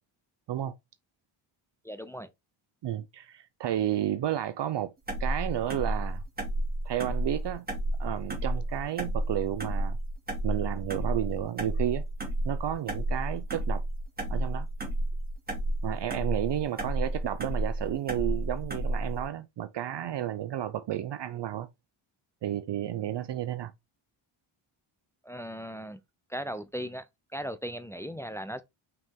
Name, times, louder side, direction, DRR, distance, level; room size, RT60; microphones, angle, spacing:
voice 1, 1.8-2.3 25.2-26.0 26.3-27.1 27.3-28.6, equal, 5° left, 0.5 m, -37 dB
voice 2, 2.8-4.9 5.2-6.2 6.8-7.7 8.0-10.0 10.4-12.0 12.4-13.8 14.3-14.7 15.8-21.7 22.4-23.7, right 11 dB, 55° right, 0.6 m, -32 dB
sound 1, 5.1-19.2, right 1 dB, 20° right, 2.4 m, -31 dB
5.9 x 4.6 x 3.7 m
wide cardioid pair, 145°, 50 cm